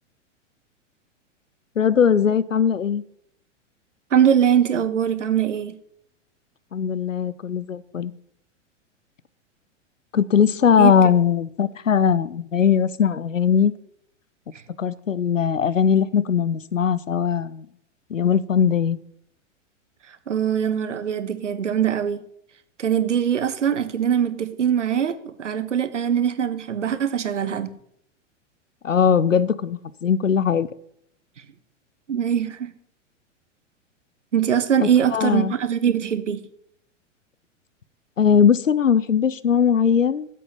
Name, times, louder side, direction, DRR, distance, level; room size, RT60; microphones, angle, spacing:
voice 1, 1.8-3.0 6.7-8.1 10.1-13.7 14.8-17.7 18.1-19.0 28.8-30.7 35.1-35.5 38.2-40.3, left 7 dB, 85° left, 0.6 m, -20 dB
voice 2, 4.1-5.8 10.8-10.9 20.3-22.2 22.8-27.7 32.1-32.7 34.3-36.4, right 9 dB, 75° right, 1.0 m, -22 dB
8.6 x 7.7 x 5.1 m
figure-of-eight pair, 100°, 37 cm